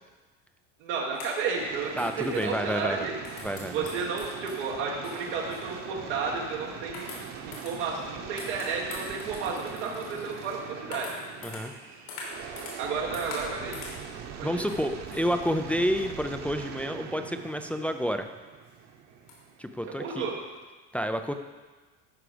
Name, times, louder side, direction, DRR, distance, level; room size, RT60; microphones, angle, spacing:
voice 1, 0.8-3.1 3.7-7.1 7.5-11.1 12.8-13.8 14.4-14.6 20.0-20.3, right 5 dB, 85° right, -3 dB, 1.4 m, -32 dB
sound 1, 1.1-5.7 6.1-6.4 6.9-8.1 8.4-12.9 13.1-14.0 14.7-16.3 17.4-17.5 18.1-18.2 18.7-18.8 19.3-19.4, left 3 dB, 80° left, 3.0 m, -44 dB
sound 2, 1.5-20.6, right 7 dB, 50° right, 1.1 m, -42 dB
voice 2, 2.0-3.1 3.4-3.8 11.4-11.7 14.4-18.3 19.6-20.3 20.9-21.3, equal, 5° left, 7 dB, 0.3 m, -29 dB
12.5 x 4.9 x 5.0 m, 1.3 s
supercardioid pair, 115°, 35 cm